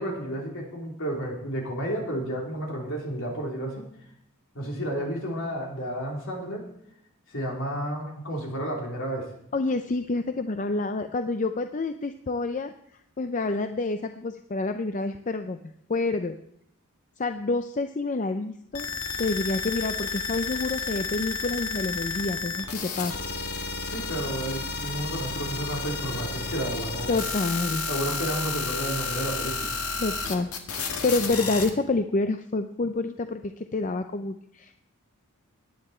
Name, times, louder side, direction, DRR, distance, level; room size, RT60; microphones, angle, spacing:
voice 1, 0.0-3.8 4.5-6.6 7.3-9.3 23.8-27.3 27.9-29.7, right 1 dB, 60° left, -1 dB, 3.8 m, -31 dB
voice 2, 9.5-12.7 13.2-15.6 15.9-16.4 17.2-18.9 19.2-23.1 27.1-27.9 30.0-34.7, left 3 dB, 35° left, 8 dB, 0.5 m, -28 dB
sound 1, 18.7-31.7, left 4 dB, 80° left, 1.7 m, -31 dB
17.5 x 10.5 x 4.4 m, 0.74 s
head